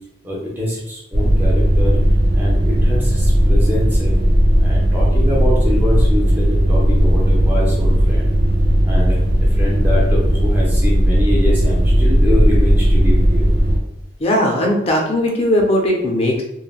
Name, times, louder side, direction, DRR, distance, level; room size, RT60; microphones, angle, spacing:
voice 1, 0.2-2.0 2.3-4.2 4.6-8.3 8.8-9.2 9.5-13.5, left 1 dB, 10° right, -5 dB, 0.6 m, -24 dB
sound 1, 1.1-13.8, equal, 85° right, 1.3 m, -15 dB
voice 2, 14.2-16.4, left 1 dB, 35° left, 0 dB, 0.5 m, -18 dB
3.1 x 2.1 x 2.3 m, 0.81 s
head